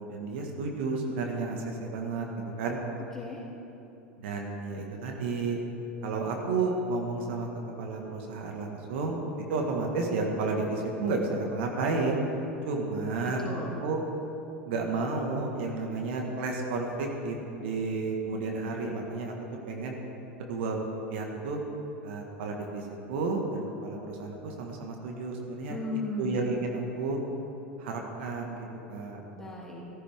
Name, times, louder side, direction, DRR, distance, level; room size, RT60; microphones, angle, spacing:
voice 1, 0.0-2.8 4.2-5.6 6.0-7.5 7.8-9.2 9.5-12.2 12.7-13.5 13.8-14.0 14.6-19.3 19.7-20.0 20.4-20.8 21.1-21.6 22.0-25.8 26.2-27.2 27.8-29.2, right 3 dB, 65° right, 1 dB, 1.8 m, -32 dB
voice 2, 13.2-13.8 25.7-26.4 29.3-29.8, left 2 dB, 10° left, -4 dB, 3.0 m, -36 dB
14.5 x 14.0 x 3.7 m, 2.9 s
hypercardioid pair, 85°, 7 cm